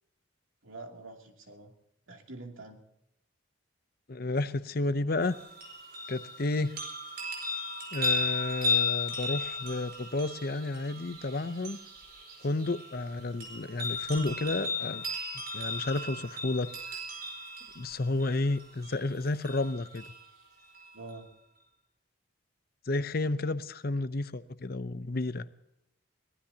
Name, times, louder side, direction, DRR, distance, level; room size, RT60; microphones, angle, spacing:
voice 1, 0.6-1.7 2.1-2.8 20.9-21.3, right 2 dB, 80° right, 2 dB, 2.8 m, -45 dB
voice 2, 4.1-5.4 6.1-6.8 7.9-11.8 12.4-15.0 15.5-16.7 17.8-20.0 22.9-25.5, left 2 dB, 50° left, 13 dB, 0.7 m, -31 dB
sound 1, 5.2-20.2 20.7-20.8, left 3 dB, 50° right, 5.0 m, -35 dB
23.0 x 18.5 x 2.8 m, 0.83 s
head